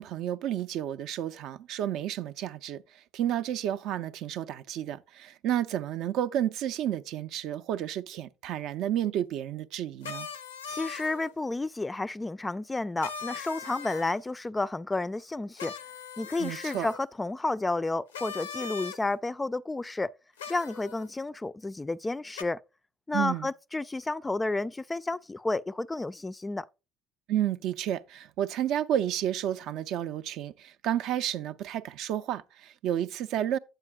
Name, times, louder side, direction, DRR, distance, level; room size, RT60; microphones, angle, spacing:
voice 1, 0.0-2.8 3.1-10.3 16.4-16.9 23.1-23.5 27.3-33.6, right 11 dB, 60° right, 0.4 m, -31 dB
sound 1, 10.0-11.3 13.0-14.2 15.6-17.0 18.1-19.0 20.4-21.1 22.3-22.4, left 6 dB, 85° left, 0.6 m, -40 dB
voice 2, 10.7-15.7 16.2-20.1 20.5-22.6 23.1-26.7, left 2 dB, 15° left, 0.3 m, -31 dB
8.8 x 8.1 x 2.2 m
hypercardioid pair, 60°, 0 cm